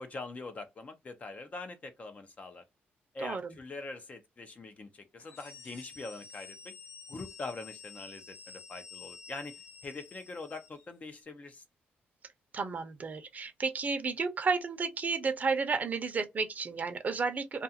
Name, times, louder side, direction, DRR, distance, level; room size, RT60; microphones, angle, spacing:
voice 1, 0.0-2.6 3.1-6.7 7.1-9.6 9.8-11.6, left 3 dB, 35° left, 0.6 m, -43 dB
voice 2, 3.2-3.6 12.5-17.6, right 4 dB, 40° right, 0.7 m, -32 dB
sound 1, 5.2-10.9, left 5 dB, 80° left, 0.6 m, -50 dB
2.4 x 2.4 x 2.7 m
cardioid pair, 90°, 4 cm